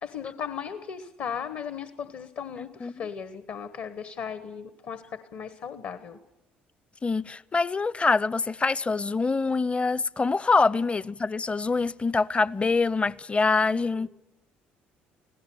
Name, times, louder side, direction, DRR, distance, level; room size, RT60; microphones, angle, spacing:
voice 1, 0.0-6.2 10.6-10.7 13.7-14.1, left 7 dB, 60° left, 1.1 m, -37 dB
voice 2, 2.6-2.9 7.0-14.1, left 4 dB, 25° left, 0.6 m, -25 dB
25.5 x 16.5 x 7.0 m
hypercardioid pair, 55°, 5 cm